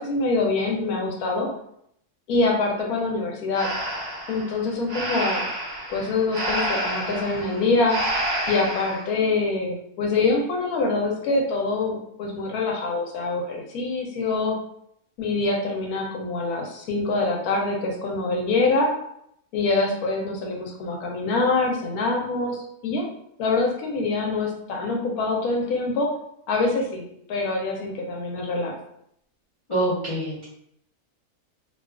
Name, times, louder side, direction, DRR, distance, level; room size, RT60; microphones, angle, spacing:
voice 1, 0.0-1.5 2.3-3.7 4.3-5.4 5.9-8.0 8.5-14.5 15.2-18.9 19.5-22.6 22.8-23.0 23.4-26.1 26.5-28.7, left 3 dB, 85° left, 0 dB, 1.1 m, -25 dB
Breathing, 3.5-9.1, right 1 dB, 50° right, 0.8 m, -29 dB
voice 2, 29.7-30.5, right 1 dB, 30° left, -10 dB, 0.5 m, -25 dB
2.7 x 2.3 x 2.3 m, 0.73 s
omnidirectional pair, 1.5 m